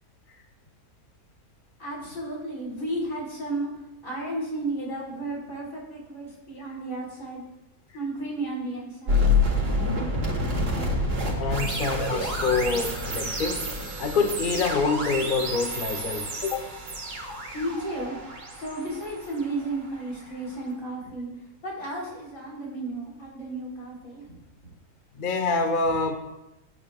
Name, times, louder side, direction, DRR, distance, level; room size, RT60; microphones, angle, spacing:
voice 1, 1.8-3.7 4.0-7.4 7.9-9.3 17.5-18.2 18.5-21.3 21.6-24.4 24.6-24.7 25.8-25.9, right 2 dB, 55° left, -4 dB, 4.2 m, -33 dB
sound 1, 9.1-20.1, left 2 dB, 90° right, 2.4 m, -28 dB
voice 2, 11.4-13.6 14.0-16.7 25.2-26.2, left 4 dB, 40° left, 5 dB, 1.0 m, -26 dB
21.0 x 8.9 x 2.4 m, 0.95 s
omnidirectional pair, 1.7 m